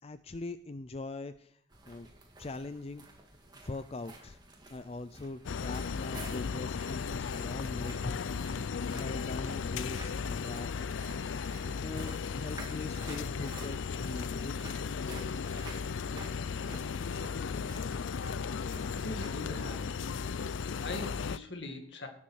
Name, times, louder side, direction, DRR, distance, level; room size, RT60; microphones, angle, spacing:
voice 1, 0.0-1.6 1.9-2.1 2.4-3.0 3.6-4.4 4.7-8.2 8.9-10.7 11.8-14.7, left 2 dB, 30° left, 12 dB, 0.4 m, -41 dB
sound 1, 1.7-19.7, right 2 dB, 20° right, 2.2 m, -52 dB
sound 2, 5.4-21.4, left 5 dB, 90° left, 0.5 m, -36 dB
voice 2, 18.9-20.0 20.3-22.1, left 2 dB, 65° left, 5 dB, 2.1 m, -42 dB
18.0 x 7.4 x 6.3 m, 0.67 s
head